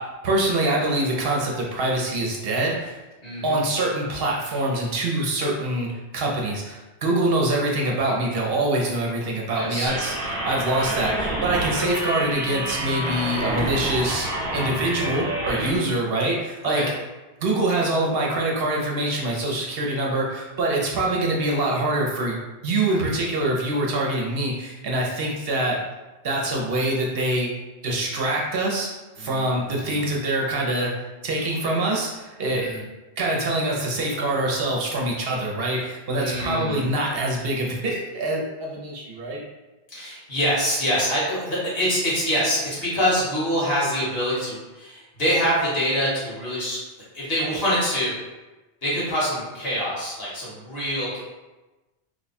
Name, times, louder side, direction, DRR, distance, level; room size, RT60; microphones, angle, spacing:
voice 1, 0.0-3.0 3.4-14.3 14.5-16.8 17.4-22.4 22.6-25.8 26.2-27.5 27.8-28.9 29.2-32.8 33.2-39.4, right 1 dB, 65° right, -2 dB, 0.8 m, -25 dB
voice 2, 3.2-3.6 9.5-9.9 15.6-15.8 16.7-16.9 29.2-30.1 32.5-32.8 36.1-36.9 39.9-46.8 47.1-48.1 48.8-51.2, equal, 60° left, -8 dB, 1.6 m, -25 dB
sound 1, 9.9-15.8, right 1 dB, 35° right, 0.9 m, -28 dB
3.1 x 2.2 x 4.1 m, 1.1 s
omnidirectional pair, 1.1 m